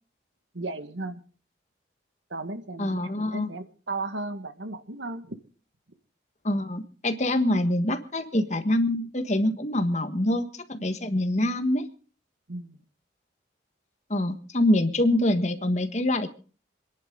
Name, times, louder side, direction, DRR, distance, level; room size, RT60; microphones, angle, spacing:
voice 1, 0.5-1.2 2.3-5.4 12.5-12.8, right 2 dB, 90° right, 9 dB, 1.7 m, -35 dB
voice 2, 2.8-3.5 6.4-11.8 14.1-16.3, left 1 dB, 40° left, 8 dB, 1.5 m, -25 dB
26.5 x 10.5 x 3.8 m, 0.40 s
head